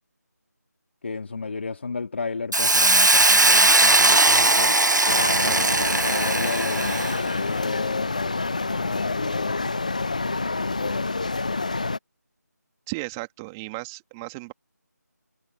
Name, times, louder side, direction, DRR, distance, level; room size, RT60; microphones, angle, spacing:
voice 1, 1.0-4.8 5.4-9.7 10.6-11.2, left 4 dB, 40° left, 2.3 m, -33 dB
Hiss, 2.5-7.2, right 2 dB, 85° right, 0.9 m, -19 dB
sound 1, 5.1-12.0, left 3 dB, 25° left, 0.3 m, -27 dB
voice 2, 12.9-14.5, right 25 dB, 10° right, 2.3 m, -35 dB
figure-of-eight pair, 165°, 10 cm